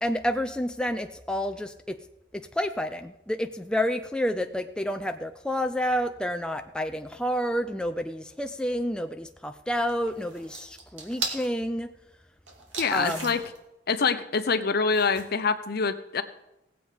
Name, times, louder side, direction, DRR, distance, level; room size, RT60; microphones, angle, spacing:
voice 1, 0.0-2.0 2.3-11.9 12.9-13.3, equal, 5° left, 7 dB, 0.4 m, -29 dB
sound 1, 9.9-11.5 12.5-13.6 14.9-15.2, right 4 dB, 90° right, 2.4 m, -37 dB
voice 2, 12.8-13.4 13.9-16.2, left 5 dB, 55° left, 10 dB, 0.8 m, -25 dB
18.0 x 7.9 x 5.0 m, 0.91 s
head